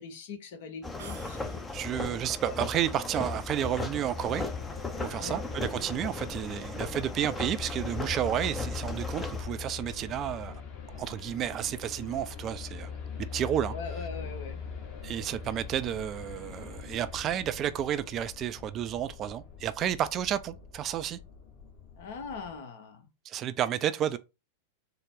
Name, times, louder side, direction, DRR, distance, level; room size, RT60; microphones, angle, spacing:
voice 1, 0.0-1.7 2.5-2.6 5.2-5.4 13.7-14.6 22.0-23.1, left 4 dB, 55° left, 0.9 m, -41 dB
sound 1, 0.8-9.4, left 3 dB, 10° left, 0.6 m, -37 dB
sound 2, 1.0-2.1, right 6 dB, 70° right, 0.7 m, -50 dB
voice 2, 1.7-4.5 5.0-10.5 10.9-12.9 13.2-13.8 15.0-21.2 23.2-24.2, right 10 dB, 35° right, 0.3 m, -31 dB
sound 3, 4.2-22.6, left 6 dB, 35° left, 1.2 m, -42 dB
3.8 x 2.0 x 3.8 m
figure-of-eight pair, 90°, 0 cm